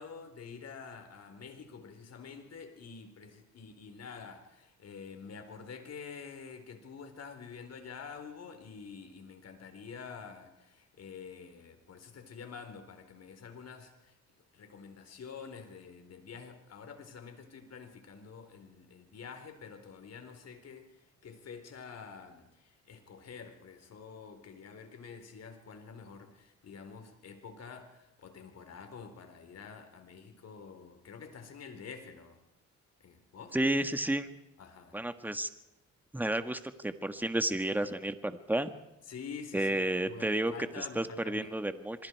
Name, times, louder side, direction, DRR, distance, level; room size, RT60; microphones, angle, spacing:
voice 1, 0.0-14.2 14.5-20.9 21.2-32.4 33.0-33.6 34.6-35.0 39.1-41.5, left 6 dB, 55° left, 6 dB, 4.4 m, -48 dB
voice 2, 33.5-34.3 34.9-35.5 36.1-38.7 39.5-42.1, right 1 dB, 5° right, 10 dB, 1.6 m, -31 dB
26.5 x 22.5 x 4.7 m, 0.92 s
cardioid pair, 90°, 30 cm